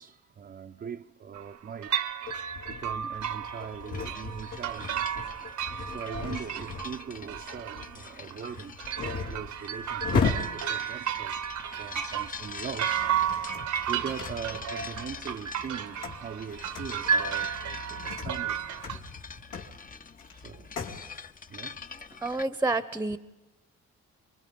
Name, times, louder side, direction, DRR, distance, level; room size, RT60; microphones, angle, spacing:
voice 1, 0.0-2.0 2.7-5.2 5.8-13.2 13.5-18.6 20.2-20.7 21.5-21.8, right 7 dB, 35° right, 0.6 m, -41 dB
sound 1, 1.3-1.6 1.8-19.0, right 8 dB, 75° right, 1.1 m, -33 dB
sound 2, 2.2-12.0 12.8-15.0 15.4-21.1, left 5 dB, 90° left, 2.9 m, -37 dB
sound 3, 3.2-22.4, left 5 dB, 30° left, 0.7 m, -45 dB
voice 2, 22.2-23.2, right 2 dB, 5° right, 0.9 m, -28 dB
25.5 x 22.5 x 5.4 m
cardioid pair, 90°, 30 cm